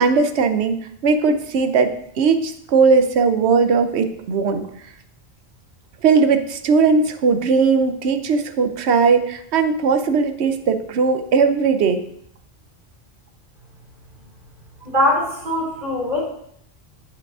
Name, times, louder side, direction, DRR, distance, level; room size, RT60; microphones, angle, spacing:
voice 1, 0.0-4.6 6.0-12.0, right 5 dB, 85° right, 8 dB, 0.9 m, -18 dB
voice 2, 14.8-16.2, left 1 dB, 50° right, -4 dB, 3.0 m, -21 dB
8.3 x 7.8 x 2.4 m, 0.69 s
omnidirectional pair, 1.1 m